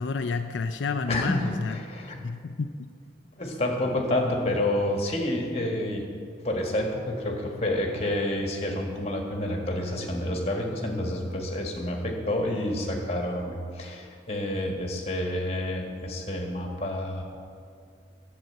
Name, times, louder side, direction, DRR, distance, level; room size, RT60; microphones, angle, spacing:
voice 1, 0.0-1.8 2.2-2.9, left 4 dB, 85° left, 7 dB, 0.5 m, -30 dB
voice 2, 1.1-2.2 3.4-6.0 6.4-17.2, left 1 dB, 35° left, 1 dB, 1.7 m, -29 dB
10.5 x 7.8 x 7.7 m, 2.3 s
head